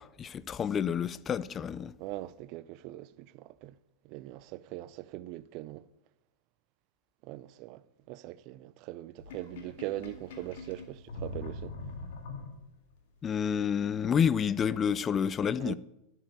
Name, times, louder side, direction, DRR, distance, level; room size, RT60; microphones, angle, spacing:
voice 1, 0.0-1.9 13.2-15.8, left 7 dB, 25° left, 0.5 m, -29 dB
voice 2, 2.0-3.8 4.0-5.9 7.2-11.8 15.6-15.8, right 16 dB, 40° right, 0.5 m, -41 dB
Sink (filling or washing), 9.2-12.9, left 2 dB, 50° left, 2.0 m, -42 dB
11.5 x 7.5 x 8.5 m
figure-of-eight pair, 90°, 0 cm